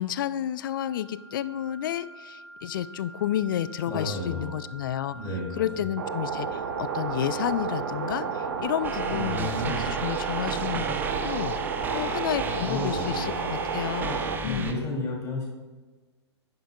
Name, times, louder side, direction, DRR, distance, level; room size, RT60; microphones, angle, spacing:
voice 1, 0.0-5.2 5.6-11.0 11.2-11.6 11.9-14.8, left 11 dB, 50° left, 16 dB, 0.4 m, -31 dB
sound 1, 0.6-10.5, right 1 dB, 75° right, 1.0 m, -46 dB
voice 2, 3.8-4.6 5.1-5.8 9.1-9.9 12.6-13.3 14.4-15.4, left 1 dB, 20° left, -2 dB, 2.9 m, -32 dB
sound 2, 6.0-14.4, right 5 dB, 50° right, 0.9 m, -31 dB
sound 3, 8.8-14.7, right 5 dB, 15° right, 0.7 m, -34 dB
10.5 x 10.0 x 2.3 m, 1.3 s
figure-of-eight pair, 110°, 14 cm